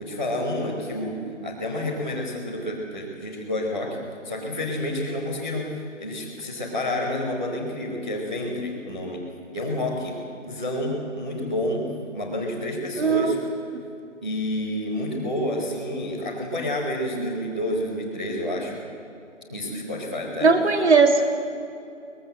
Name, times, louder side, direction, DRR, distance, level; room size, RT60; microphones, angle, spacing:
voice 1, 0.0-9.2 9.5-10.2 10.4-13.4 14.2-18.8 19.5-20.5, left 1 dB, 5° right, -8 dB, 1.0 m, -29 dB
voice 2, 13.0-13.3 20.4-21.2, right 4 dB, 60° right, 5 dB, 3.1 m, -18 dB
23.5 x 20.5 x 7.7 m, 2.6 s
hypercardioid pair, 175°, 37 cm